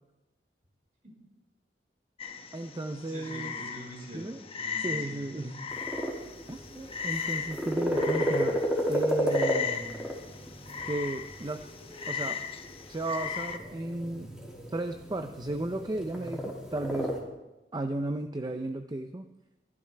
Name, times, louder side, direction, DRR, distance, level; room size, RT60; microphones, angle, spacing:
Frog, 2.2-13.6, left 6 dB, 35° left, 0.9 m, -38 dB
voice 1, 2.5-3.5 4.1-4.4 4.8-5.5 6.5-8.6 8.9-10.1 10.8-11.6 12.1-12.4 12.9-14.3 14.7-17.1 17.7-19.3, right 2 dB, 25° right, 6 dB, 0.6 m, -34 dB
voice 2, 3.0-5.8, equal, 45° right, -2 dB, 5.1 m, -45 dB
sound 1, 5.7-17.2, equal, 5° right, 2.6 m, -33 dB
22.5 x 12.5 x 3.4 m, 0.99 s
head